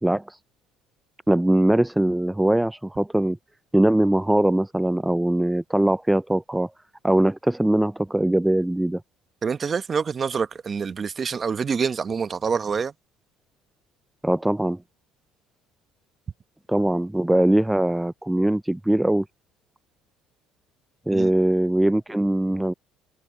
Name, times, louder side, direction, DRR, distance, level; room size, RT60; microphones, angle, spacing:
voice 1, 0.0-0.4 1.3-3.4 3.7-6.7 7.0-9.0 14.2-14.8 16.7-19.3 21.1-22.7, right 1 dB, 5° right, 0.4 m, -21 dB
voice 2, 9.4-12.9 21.1-21.3, right 6 dB, 35° right, 1.1 m, -26 dB
supercardioid pair, 90°, 0 cm